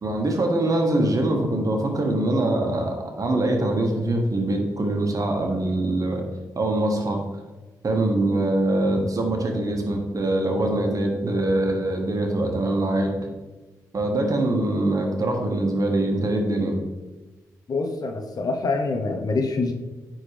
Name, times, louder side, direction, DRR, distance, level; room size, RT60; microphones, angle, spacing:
voice 1, 0.0-6.2 6.5-7.2 7.8-13.1 13.9-16.8, right 1 dB, 45° right, 2 dB, 1.4 m, -23 dB
voice 2, 17.7-19.7, left 3 dB, 55° left, 4 dB, 0.9 m, -25 dB
9.7 x 3.8 x 3.4 m, 1.2 s
hypercardioid pair, 40°, 8 cm